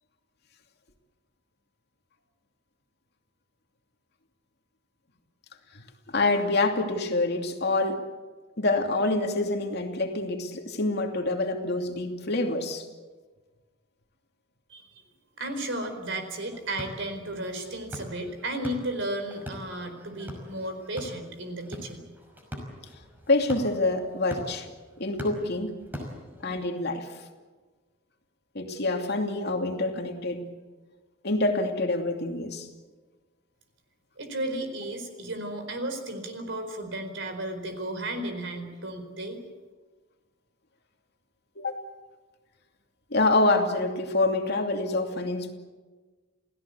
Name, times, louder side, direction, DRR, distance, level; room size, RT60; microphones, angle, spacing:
voice 1, 6.1-8.0 8.6-12.9 23.3-24.7 25.0-25.7 26.4-27.1 28.5-30.5 31.2-32.7 41.6-41.8 43.1-45.5, left 2 dB, 55° left, 3 dB, 2.7 m, -26 dB
voice 2, 15.4-22.0 34.2-39.4, right 1 dB, 65° right, 7 dB, 4.4 m, -34 dB
sound 1, 16.5-26.7, equal, 10° right, 5.6 m, -43 dB
28.5 x 17.0 x 8.4 m, 1.3 s
head